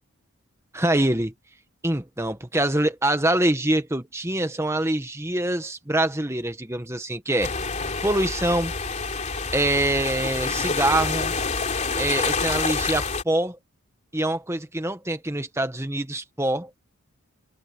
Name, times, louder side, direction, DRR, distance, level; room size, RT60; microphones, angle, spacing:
voice 1, 0.7-1.3 1.8-7.5 8.0-8.7 9.5-11.3 11.9-13.6 14.1-16.7, right 1 dB, 10° right, 1.5 m, -24 dB
sound 1, 7.4-13.2, left 4 dB, 30° left, 3.8 m, -27 dB
open air
head